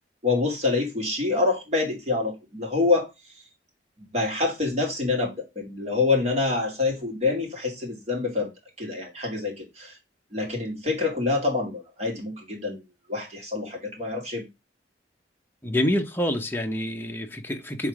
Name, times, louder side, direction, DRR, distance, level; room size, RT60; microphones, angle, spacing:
voice 1, 0.2-3.1 4.0-8.5 8.8-9.9 10.3-12.8 13.1-14.5, left 3 dB, 35° right, 2.5 m, -26 dB
voice 2, 15.6-17.9, left 1 dB, 10° left, 0.8 m, -27 dB
7.0 x 3.7 x 4.7 m
head